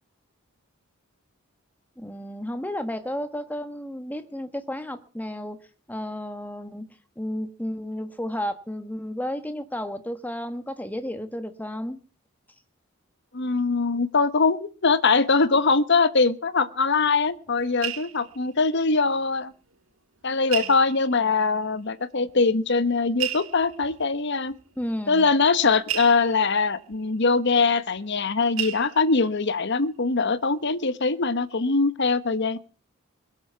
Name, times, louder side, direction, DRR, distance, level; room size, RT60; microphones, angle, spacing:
voice 1, 2.0-5.6 5.9-6.9 7.2-12.0 24.8-25.3, equal, 10° left, 9 dB, 1.5 m, -32 dB
voice 2, 13.3-19.5 20.2-24.5 25.1-32.6, left 4 dB, 55° left, 14 dB, 1.1 m, -22 dB
sound 1, 17.1-19.4 19.7-19.8 20.5-21.5 22.3-22.4 23.1-28.3 28.6-29.5 29.9-30.3 30.5-30.7, right 11 dB, 70° right, 1.6 m, -36 dB
22.0 x 8.0 x 7.0 m, 0.39 s
head